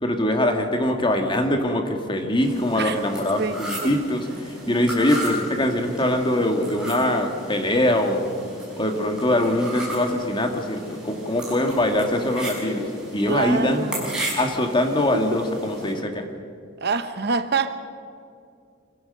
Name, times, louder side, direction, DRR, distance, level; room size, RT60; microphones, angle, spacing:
voice 1, 0.0-8.3 8.8-12.9 13.1-13.9 14.4-16.3, left 1 dB, 25° left, 4 dB, 1.9 m, -23 dB
sound 1, 2.4-15.9, equal, 5° right, 6.6 m, -35 dB
voice 2, 3.4-3.9 4.7-4.8 13.3-14.3 16.8-17.7, right 4 dB, 55° right, 10 dB, 0.9 m, -26 dB
25.0 x 15.5 x 6.7 m, 2.4 s
head